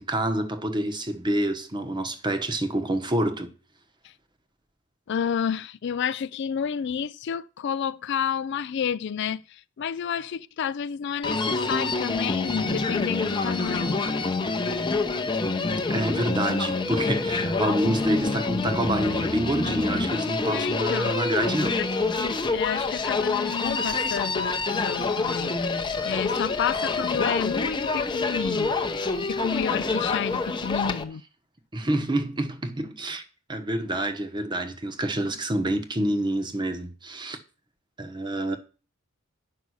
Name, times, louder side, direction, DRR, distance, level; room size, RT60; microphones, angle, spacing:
voice 1, 0.0-3.5 15.9-21.8 31.7-33.2 33.5-37.4 38.0-38.6, right 1 dB, 20° right, 0.9 m, -27 dB
voice 2, 5.1-14.0 20.5-21.2 21.8-25.7 26.0-28.7 29.2-31.2, left 7 dB, 55° left, 0.4 m, -30 dB
Human voice, 11.2-31.0, left 3 dB, 20° left, 0.7 m, -27 dB
9.5 x 5.2 x 6.3 m
head